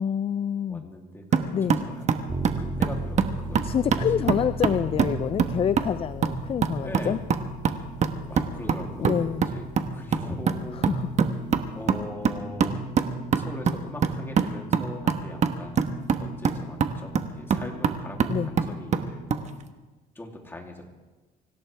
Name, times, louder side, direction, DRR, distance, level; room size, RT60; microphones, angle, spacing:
voice 1, 0.0-0.8 1.5-1.8 3.6-7.2 9.0-9.5 10.9-11.0 18.3-18.5, left 8 dB, 35° left, 15 dB, 0.4 m, -27 dB
voice 2, 0.7-2.3 2.6-3.6 4.2-4.4 6.8-7.3 8.2-9.3 9.5-9.7 9.9-11.0 11.7-12.8 13.3-19.2 20.1-20.8, left 1 dB, 15° left, 0 dB, 2.9 m, -40 dB
sound 1, 1.3-19.5, right 6 dB, 45° right, 1.2 m, -26 dB
sound 2, 2.3-12.0, right 2 dB, 25° right, 1.8 m, -39 dB
25.0 x 16.5 x 3.4 m, 1.2 s
cardioid pair, 110°, 17 cm